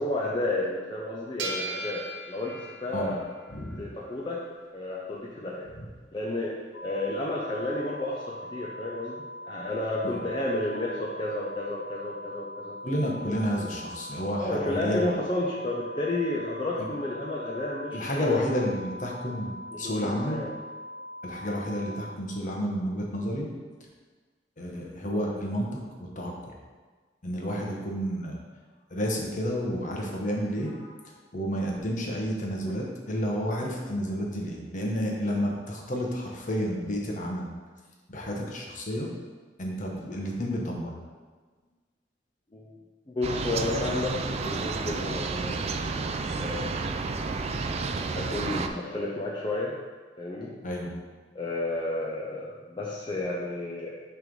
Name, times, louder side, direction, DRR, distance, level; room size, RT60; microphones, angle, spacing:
voice 1, 0.0-3.2 3.8-4.4 4.7-5.7 6.1-9.2 9.4-12.8 14.4-18.4 19.7-20.5 42.5-42.7 43.1-45.7 46.4-47.1 47.9-49.8 50.2-50.5 51.3-54.0, left 2 dB, 25° left, -5 dB, 0.6 m, -32 dB
sound 1, 1.4-4.3, right 2 dB, 80° right, 0.6 m, -38 dB
voice 2, 3.5-3.8 5.8-5.9 10.0-10.1 12.8-15.1 16.8-16.9 17.9-20.4 21.2-23.5 24.6-26.6 27.2-28.4 28.9-37.5 38.1-39.1 39.6-41.0 50.6-50.9, equal, 45° left, -1 dB, 1.1 m, -31 dB
sound 2, 6.7-22.2, left 1 dB, 70° left, 0.7 m, -42 dB
sound 3, 43.2-48.7, right 4 dB, 35° right, 0.4 m, -31 dB
6.4 x 3.4 x 5.2 m, 1.4 s
head